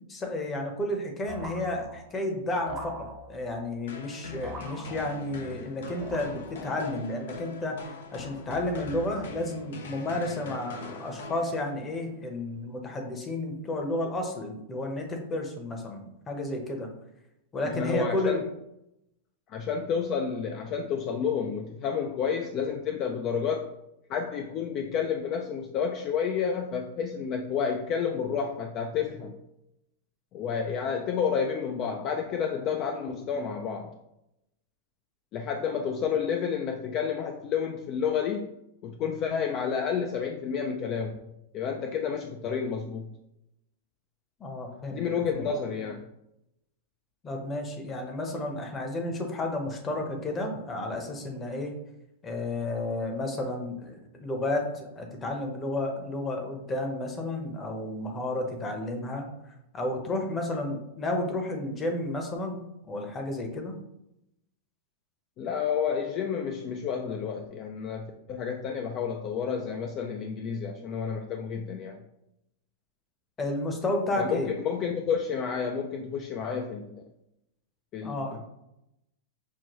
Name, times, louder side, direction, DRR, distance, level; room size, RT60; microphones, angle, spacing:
voice 1, 0.1-7.8 8.1-16.9 17.5-18.4 44.4-45.0 45.4-45.5 47.2-51.8 52.2-59.3 59.7-62.6 62.9-63.8 73.4-74.5 78.0-78.4, left 1 dB, 20° left, 3 dB, 0.8 m, -32 dB
sound 1, 1.3-2.2 2.7-3.6 4.4-5.5 6.0-6.7, right 2 dB, 25° right, 0.8 m, -42 dB
sound 2, 3.9-12.0, left 4 dB, 80° left, 0.7 m, -42 dB
voice 2, 17.7-18.4 19.5-23.7 24.1-29.4 30.3-33.9 35.3-38.5 38.8-41.2 41.5-43.1 44.9-46.1 65.4-72.0 74.2-77.0 77.9-78.5, left 6 dB, 35° left, 4 dB, 0.4 m, -30 dB
6.2 x 2.2 x 3.0 m, 0.85 s
hypercardioid pair, 135°, 0 cm